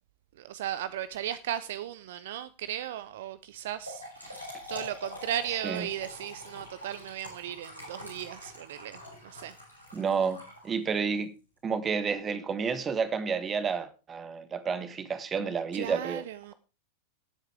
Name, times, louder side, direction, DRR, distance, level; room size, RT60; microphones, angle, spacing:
voice 1, 0.3-9.6 15.7-16.5, right 11 dB, 55° right, 0.6 m, -36 dB
Trickle dribble / Fill (with liquid), 3.6-11.0, equal, 90° right, 6.3 m, -44 dB
voice 2, 9.9-10.4 10.6-11.3 11.6-16.2, right 5 dB, 20° right, 1.4 m, -30 dB
18.0 x 8.1 x 3.4 m
figure-of-eight pair, 90°, 0 cm